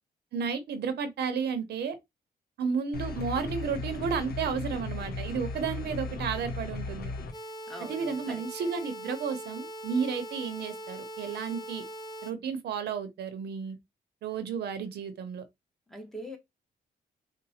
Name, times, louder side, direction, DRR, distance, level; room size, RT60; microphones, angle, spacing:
voice 1, 0.3-2.0 2.6-7.1 7.8-11.8 12.2-13.8 14.2-15.4, right 6 dB, 90° right, 0.7 m, -32 dB
sound 1, 2.9-7.3, left 3 dB, 70° left, 0.7 m, -36 dB
sound 2, 7.3-12.3, right 1 dB, 25° left, 0.8 m, -41 dB
voice 2, 7.7-8.4 15.9-16.4, right 1 dB, ahead, 1.0 m, -43 dB
4.0 x 2.1 x 2.7 m
cardioid pair, 110°, 17 cm